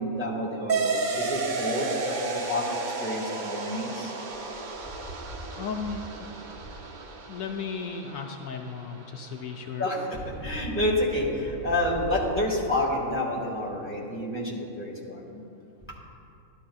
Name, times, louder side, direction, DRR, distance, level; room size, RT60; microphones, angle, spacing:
voice 1, 0.0-2.1 2.5-4.1 9.8-15.4, left 1 dB, 10° left, -4 dB, 1.6 m, -29 dB
sound 1, 0.7-9.7, right 3 dB, 50° right, 0.6 m, -33 dB
voice 2, 5.6-6.3 7.3-9.8, left 5 dB, 75° left, 3 dB, 0.9 m, -35 dB
13.0 x 11.5 x 2.3 m, 2.6 s
omnidirectional pair, 1.4 m